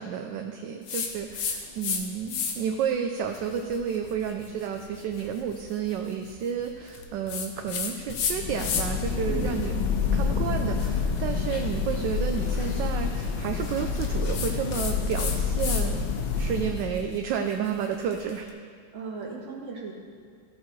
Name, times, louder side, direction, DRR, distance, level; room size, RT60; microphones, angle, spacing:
voice 1, 0.0-9.8 10.1-16.0 16.4-18.5, right 7 dB, 75° right, 4 dB, 1.1 m, -31 dB
sound 1, 0.9-2.0 2.3-2.8 3.3-9.1 9.4-15.9 16.2-18.4, left 6 dB, 85° left, 1.7 m, -35 dB
sound 2, 8.0-17.2, left 5 dB, 70° left, 1.4 m, -28 dB
voice 2, 9.3-9.6 18.9-19.9, right 4 dB, 40° right, -2 dB, 1.6 m, -36 dB
14.0 x 7.4 x 3.1 m, 2.1 s
omnidirectional pair, 2.2 m